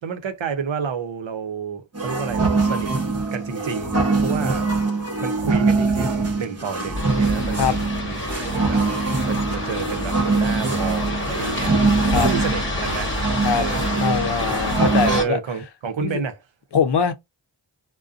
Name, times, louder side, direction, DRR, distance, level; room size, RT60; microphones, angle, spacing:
voice 1, 0.0-2.9 3.3-4.7 5.2-8.8 9.2-13.1 13.5-14.5 15.0-16.4, right 6 dB, 80° right, 0.7 m, -30 dB
sound 1, 1.9-15.2, right 3 dB, 35° right, 0.8 m, -23 dB
sound 2, 7.0-15.2, left 2 dB, 25° left, 1.0 m, -28 dB
voice 2, 14.0-15.4 16.0-16.2 16.7-17.1, left 6 dB, 65° left, 0.6 m, -22 dB
2.5 x 2.2 x 2.3 m
wide cardioid pair, 80°, 45 cm